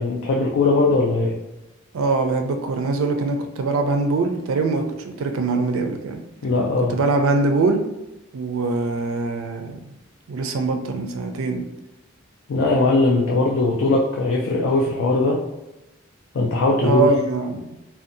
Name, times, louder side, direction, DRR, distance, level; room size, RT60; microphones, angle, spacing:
voice 1, 0.0-1.3 6.4-6.9 12.5-15.4 16.3-17.1, left 2 dB, 70° left, -1 dB, 0.4 m, -19 dB
voice 2, 1.9-6.2 6.9-7.9 8.3-9.8 10.3-11.6 16.8-17.7, right 3 dB, 85° right, 5 dB, 0.4 m, -22 dB
2.6 x 2.2 x 2.5 m, 0.97 s
head